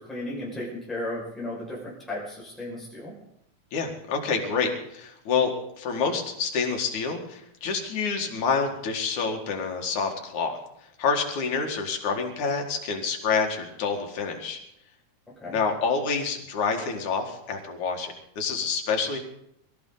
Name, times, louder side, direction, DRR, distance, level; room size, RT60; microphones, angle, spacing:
voice 1, 0.1-3.1 15.4-15.6, left 1 dB, ahead, -5 dB, 5.1 m, -34 dB
voice 2, 3.7-5.5 5.8-10.6 11.0-14.6 15.5-19.2, left 5 dB, 85° left, 3 dB, 3.3 m, -27 dB
23.5 x 13.5 x 3.9 m, 0.75 s
omnidirectional pair, 3.3 m